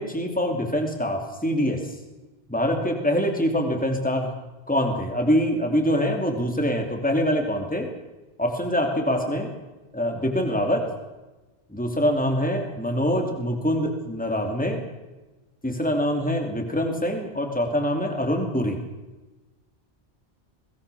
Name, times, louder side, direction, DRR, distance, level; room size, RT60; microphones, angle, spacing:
voice 1, 0.0-1.8 2.5-4.3 4.7-7.9 8.4-9.5 9.9-10.8 11.7-14.8 15.6-18.8, equal, 5° left, 3 dB, 2.9 m, -24 dB
23.0 x 18.5 x 7.0 m, 1.1 s
omnidirectional pair, 1.1 m